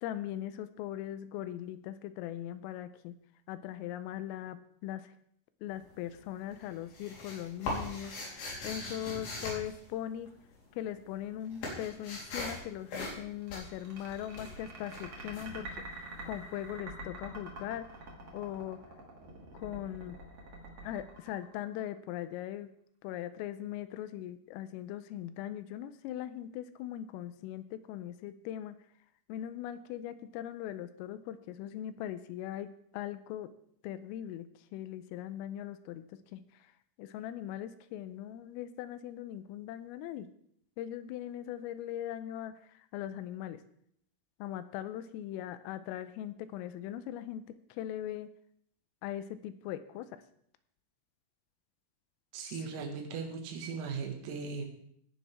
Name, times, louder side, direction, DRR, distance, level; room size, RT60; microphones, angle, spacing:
voice 1, 0.0-3.1 3.5-5.1 5.6-8.1 8.6-10.3 10.7-15.7 16.0-17.9 18.3-18.8 19.5-20.2 20.8-22.7 23.0-28.7 29.3-33.5 33.8-34.5 34.7-36.7 37.0-40.3 40.8-43.6 44.4-47.4 47.7-48.3 49.0-50.2 52.5-52.6, left 11 dB, 85° left, 12 dB, 3.3 m, -40 dB
sound 1, 5.7-6.2 6.5-10.6 10.8-16.4, left 2 dB, 50° left, 5.1 m, -41 dB
sound 2, 13.4-22.1, right 2 dB, 40° right, 2.8 m, -46 dB
voice 2, 52.3-54.7, right 5 dB, 85° right, 3 dB, 4.6 m, -38 dB
17.5 x 10.5 x 3.5 m, 0.68 s
omnidirectional pair, 6.0 m